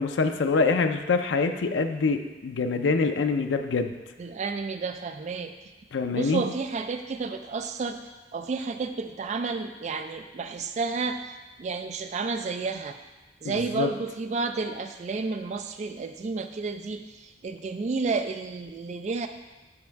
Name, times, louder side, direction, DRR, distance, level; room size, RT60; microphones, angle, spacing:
voice 1, 0.0-3.9 5.9-6.4 13.4-13.9, left 4 dB, 90° left, 7 dB, 0.4 m, -25 dB
voice 2, 4.2-5.5 6.1-8.0 8.3-13.0 13.4-19.3, right 4 dB, 40° right, 7 dB, 0.3 m, -31 dB
6.2 x 5.4 x 4.5 m, 1.2 s
head